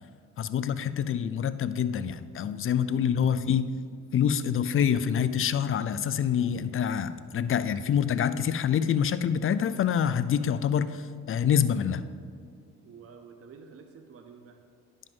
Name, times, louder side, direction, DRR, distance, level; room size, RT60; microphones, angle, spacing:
voice 1, 0.4-3.7 4.1-12.0, left 8 dB, 45° left, 13 dB, 0.4 m, -26 dB
sound 1, 4.1-4.3 4.8-4.9 5.5-5.7 6.2-6.5 6.9-7.1 7.6-7.7 8.4-8.5 9.1-9.2, right 1 dB, 20° right, 1.7 m, -61 dB
voice 2, 12.8-14.6, right 5 dB, 50° right, 6 dB, 0.7 m, -50 dB
10.5 x 5.5 x 5.4 m, 2.1 s
cardioid pair, 90°, 30 cm